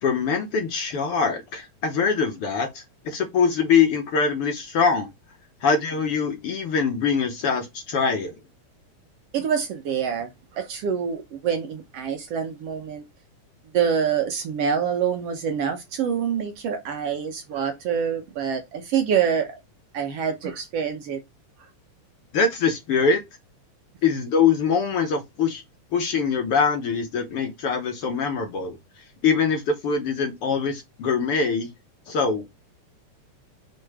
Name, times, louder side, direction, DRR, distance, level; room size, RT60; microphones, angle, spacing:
voice 1, 0.0-5.1 5.6-8.3 22.3-23.2 24.0-25.6 25.9-28.8 29.2-31.7 32.1-32.5, left 5 dB, 60° left, 1.7 m, -23 dB
voice 2, 9.3-10.3 10.6-13.0 13.7-19.5 19.9-21.2, right 7 dB, 65° right, 1.8 m, -26 dB
6.5 x 3.9 x 4.9 m
omnidirectional pair, 3.4 m